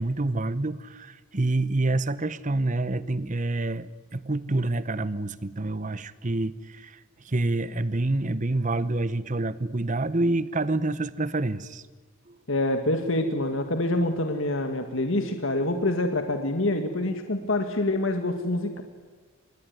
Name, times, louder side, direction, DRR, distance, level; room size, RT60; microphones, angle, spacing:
voice 1, 0.0-6.9 7.3-11.8, right 2 dB, 35° right, 16 dB, 0.9 m, -27 dB
voice 2, 12.5-18.8, left 2 dB, 65° left, 6 dB, 1.9 m, -26 dB
25.5 x 21.0 x 9.4 m, 1.4 s
head